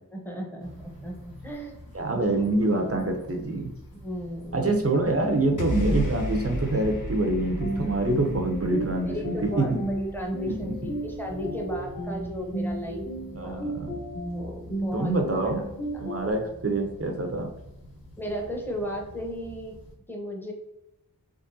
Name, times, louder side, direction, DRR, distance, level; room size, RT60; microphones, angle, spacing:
voice 1, 0.1-1.8 4.0-4.7 9.0-13.0 13.4-13.7 14.3-15.1 15.4-15.6 15.9-16.0 18.2-19.8 20.1-20.5, equal, 5° left, 0 dB, 0.9 m, -35 dB
sound 1, 0.6-20.0, left 1 dB, 70° left, 1.0 m, -47 dB
voice 2, 1.9-3.7 4.5-9.8 10.5-10.8 13.3-14.0 14.9-15.6 16.0-17.5, right 2 dB, 40° right, 3 dB, 0.6 m, -26 dB
sound 2, 5.6-12.0, equal, 55° left, 0.6 m, -34 dB
sound 3, 7.6-16.3, right 1 dB, 30° left, 1.0 m, -34 dB
3.6 x 3.2 x 2.7 m, 0.91 s
wide cardioid pair, 60°, 37 cm